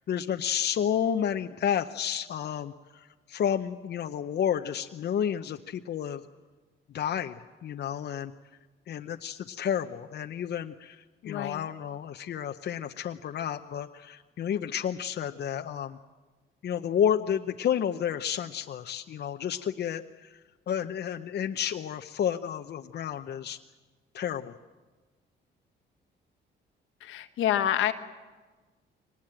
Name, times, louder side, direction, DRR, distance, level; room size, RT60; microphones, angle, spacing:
voice 1, 0.0-6.2 6.9-8.3 8.9-16.0 16.6-23.6 24.1-24.5, left 9 dB, 60° left, 6 dB, 0.7 m, -31 dB
voice 2, 11.2-11.7 27.0-27.9, left 11 dB, 80° left, 8 dB, 1.4 m, -27 dB
23.5 x 19.5 x 8.9 m, 1.3 s
cardioid pair, 90°, 20 cm